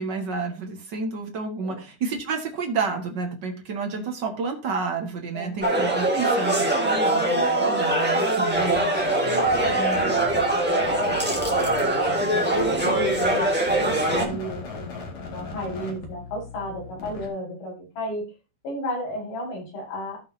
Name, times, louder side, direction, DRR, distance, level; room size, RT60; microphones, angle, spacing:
voice 1, 0.0-8.8 9.8-10.0 14.0-14.4, right 4 dB, 55° right, 3 dB, 1.2 m, -30 dB
voice 2, 5.3-5.8 9.2-13.5 13.8-18.3 18.6-20.2, equal, 80° left, -3 dB, 7.3 m, -34 dB
sound 1, 5.6-14.2, right 1 dB, 5° right, 0.8 m, -22 dB
sound 2, 8.5-17.3, left 4 dB, 50° left, 3.1 m, -38 dB
16.0 x 6.0 x 2.8 m, 0.30 s
omnidirectional pair, 4.5 m